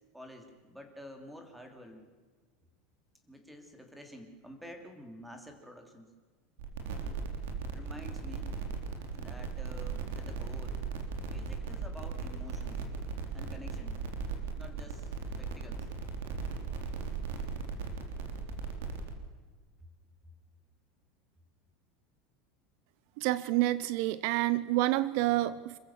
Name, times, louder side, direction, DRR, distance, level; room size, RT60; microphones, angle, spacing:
voice 1, 0.1-2.1 3.3-6.1 7.0-7.2 7.7-8.6 9.1-10.8 11.3-12.8 13.3-14.0 14.6-15.1 15.4-15.9, equal, ahead, 5 dB, 2.9 m, -49 dB
sound 1, 6.6-19.1, right 5 dB, 90° right, 3.6 m, -37 dB
voice 2, 23.2-25.8, right 16 dB, 60° right, 17 dB, 0.7 m, -28 dB
26.5 x 14.5 x 7.3 m, 1.5 s
supercardioid pair, 160°, 0 cm